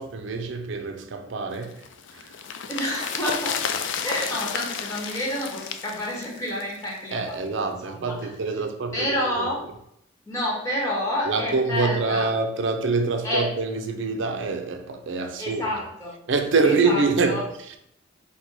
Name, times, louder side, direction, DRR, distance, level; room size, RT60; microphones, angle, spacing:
voice 1, 0.0-1.9 2.1-2.3 7.1-9.5 11.2-15.6 16.3-17.8, right 4 dB, 65° right, 0.5 m, -25 dB
sound 1, 1.6-7.0 7.3-7.4, left 7 dB, 65° left, 0.4 m, -32 dB
voice 2, 2.7-3.6 4.0-8.3 8.6-8.7 8.9-9.6 10.3-12.3 13.2-13.4 15.4-16.1 16.6-17.4, left 1 dB, 15° left, 1.2 m, -29 dB
4.3 x 2.2 x 4.5 m
head